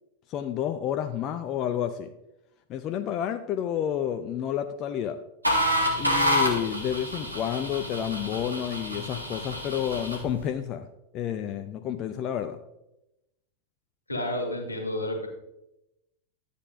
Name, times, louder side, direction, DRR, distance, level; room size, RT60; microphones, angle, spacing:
voice 1, 0.3-2.1 2.7-5.2 6.0-10.9 11.1-12.6, left 9 dB, 35° left, 7 dB, 0.5 m, -30 dB
sound 1, 5.4-10.3, equal, 85° right, 1.6 m, -28 dB
voice 2, 14.1-15.3, left 1 dB, 80° left, 2 dB, 1.9 m, -30 dB
12.0 x 8.3 x 2.6 m, 0.89 s
figure-of-eight pair, 90°, 0 cm